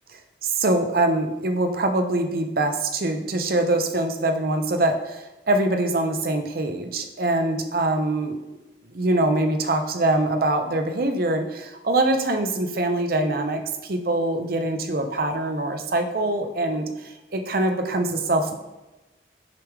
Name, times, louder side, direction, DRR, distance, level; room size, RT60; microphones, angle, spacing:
voice 1, 0.1-8.4 8.9-18.6, right 2 dB, 55° right, 5 dB, 0.7 m, -24 dB
6.8 x 3.5 x 4.7 m, 1.0 s
head